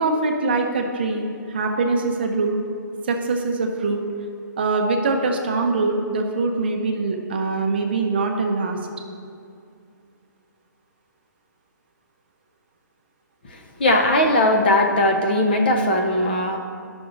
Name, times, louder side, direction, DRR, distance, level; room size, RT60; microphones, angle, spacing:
voice 1, 0.0-2.6 3.0-4.1 4.6-8.8, right 3 dB, 30° right, 2 dB, 0.6 m, -23 dB
voice 2, 13.5-16.6, left 1 dB, 30° left, 3 dB, 0.6 m, -19 dB
11.5 x 6.0 x 3.8 m, 2.4 s
hypercardioid pair, 180°, 11 cm